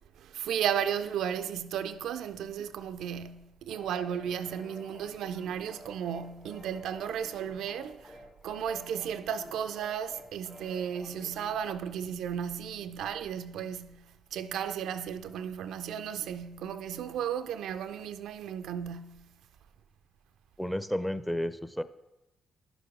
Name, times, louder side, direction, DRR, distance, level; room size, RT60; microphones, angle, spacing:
voice 1, 0.2-8.2 8.4-14.0 14.3-19.3, right 8 dB, 70° right, 0.3 m, -34 dB
sound 1, 3.7-11.7, equal, 40° left, 3.1 m, -51 dB
voice 2, 20.6-21.8, equal, 5° left, 0.6 m, -32 dB
11.0 x 7.0 x 3.6 m
hypercardioid pair, 40°, 0 cm